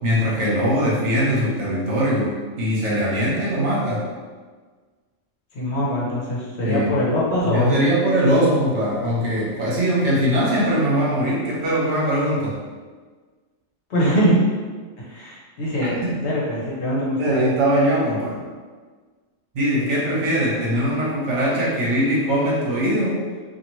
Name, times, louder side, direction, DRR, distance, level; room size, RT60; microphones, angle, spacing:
voice 1, 0.0-4.1 6.6-6.9 7.5-12.6 15.8-16.2 17.2-18.4 19.5-23.2, equal, 65° right, -5 dB, 1.1 m, -21 dB
voice 2, 5.5-7.7 13.9-14.4 15.0-17.4, equal, 60° left, -5 dB, 1.0 m, -22 dB
2.8 x 2.5 x 3.0 m, 1.5 s
omnidirectional pair, 1.3 m